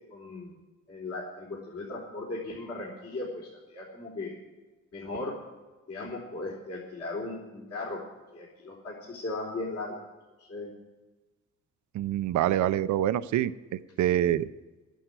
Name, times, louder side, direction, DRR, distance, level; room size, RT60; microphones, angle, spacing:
voice 1, 0.1-0.5 0.9-4.3 4.9-5.4 5.9-8.0 8.3-10.0 10.4-10.7, left 2 dB, 50° left, -4 dB, 3.6 m, -37 dB
voice 2, 11.9-14.5, right 12 dB, 70° right, 14 dB, 0.6 m, -26 dB
12.0 x 9.2 x 8.2 m, 1.2 s
cardioid pair, 90°, 30 cm